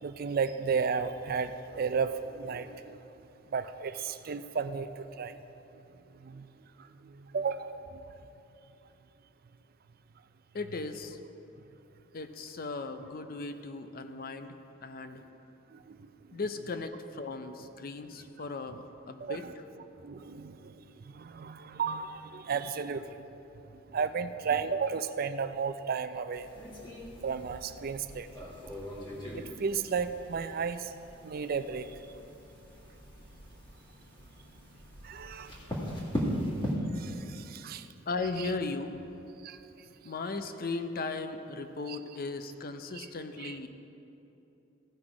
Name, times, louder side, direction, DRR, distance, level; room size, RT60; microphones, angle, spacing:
voice 1, 0.0-3.0 3.5-5.4 6.2-6.5 6.8-8.0 15.7-16.4 17.6-17.7 19.2-19.5 20.0-23.3 23.9-26.5 27.2-28.3 29.3-30.9 31.2-31.9 35.0-35.5 37.0-37.9 38.4-38.5 39.4-39.6 41.9-42.0 42.9-43.1 43.4-43.6, right 5 dB, 50° right, 11 dB, 0.4 m, -34 dB
voice 2, 10.5-11.2 12.1-14.6 14.8-15.2 16.3-19.4 38.1-38.9 40.0-43.7, left 3 dB, 50° left, 8 dB, 0.6 m, -37 dB
sound 1, 26.3-36.7, equal, 25° left, 1.9 m, -40 dB
16.0 x 5.9 x 4.9 m, 2.9 s
head